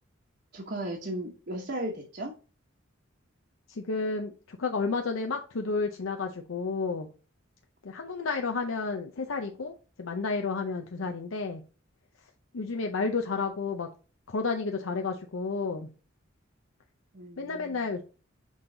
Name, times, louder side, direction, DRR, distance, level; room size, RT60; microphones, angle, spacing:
voice 1, 0.5-2.3 17.1-17.8, right 1 dB, 50° right, -2 dB, 1.0 m, -36 dB
voice 2, 3.7-7.1 7.8-11.6 12.5-13.9 14.3-15.9 17.4-18.0, left 4 dB, 80° left, 3 dB, 0.6 m, -31 dB
6.3 x 3.8 x 3.9 m, 0.35 s
head